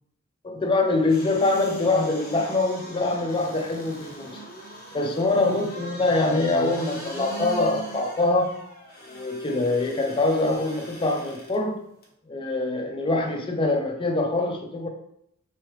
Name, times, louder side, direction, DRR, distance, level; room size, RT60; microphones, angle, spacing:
voice 1, 0.4-4.4 4.9-8.5 9.0-11.8 12.3-14.9, left 2 dB, 25° left, 3 dB, 0.4 m, -24 dB
sound 1, 1.0-11.6 12.0-12.1, right 1 dB, 45° left, 0.9 m, -40 dB
3.6 x 3.1 x 3.1 m, 0.78 s
head